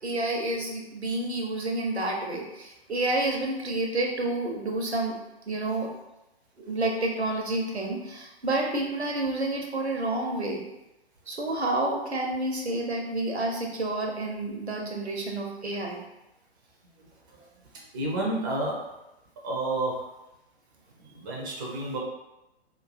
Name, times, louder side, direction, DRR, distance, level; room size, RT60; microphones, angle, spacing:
voice 1, 0.0-5.1 5.5-5.9 6.6-10.6 11.3-16.1, right 2 dB, 85° right, 1 dB, 0.7 m, -29 dB
voice 2, 17.7-18.8 19.4-20.1 21.0-22.0, right 2 dB, 20° right, -3 dB, 0.4 m, -30 dB
3.1 x 2.2 x 2.4 m, 0.94 s
figure-of-eight pair, 115°, 32 cm